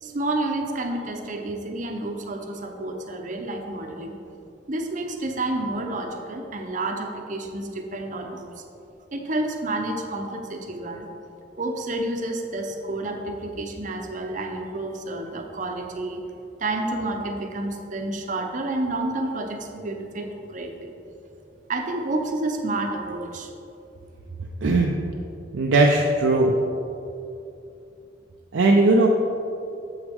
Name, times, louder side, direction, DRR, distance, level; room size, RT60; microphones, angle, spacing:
voice 1, 0.0-4.2 4.7-8.5 9.1-11.1 11.6-16.2 16.6-20.9 21.7-23.5, right 2 dB, 40° right, 4 dB, 0.7 m, -29 dB
voice 2, 24.6-24.9 25.5-26.5 28.5-29.1, right 2 dB, 80° right, 1 dB, 0.5 m, -18 dB
8.1 x 7.2 x 3.5 m, 2.7 s
head